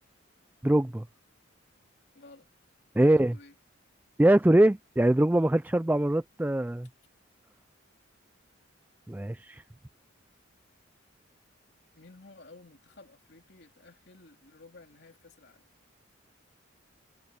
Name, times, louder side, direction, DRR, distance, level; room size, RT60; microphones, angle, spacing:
voice 1, 0.6-1.0 3.0-3.4 4.2-6.9 9.1-9.6, right 1 dB, 10° right, 0.3 m, -23 dB
voice 2, 2.1-2.5 3.0-3.6 11.9-15.7, left 2 dB, 55° left, 2.9 m, -53 dB
head